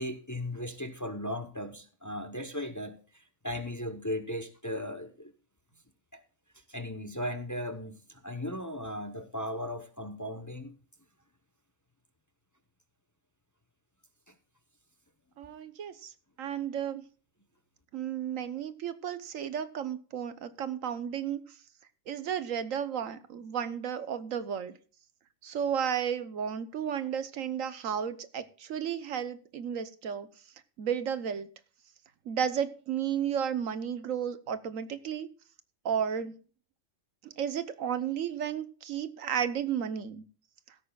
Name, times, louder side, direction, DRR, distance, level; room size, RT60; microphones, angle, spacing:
voice 1, 0.0-5.3 6.1-6.2 6.5-10.7 14.3-14.4, left 1 dB, 15° left, 0.8 m, -37 dB
voice 2, 15.4-16.1 16.4-17.0 17.9-21.4 22.1-24.8 25.4-30.3 30.8-31.5 32.2-35.3 35.8-36.4 37.2-40.2, right 8 dB, 85° right, 1.4 m, -33 dB
16.0 x 13.5 x 2.4 m
omnidirectional pair, 1.3 m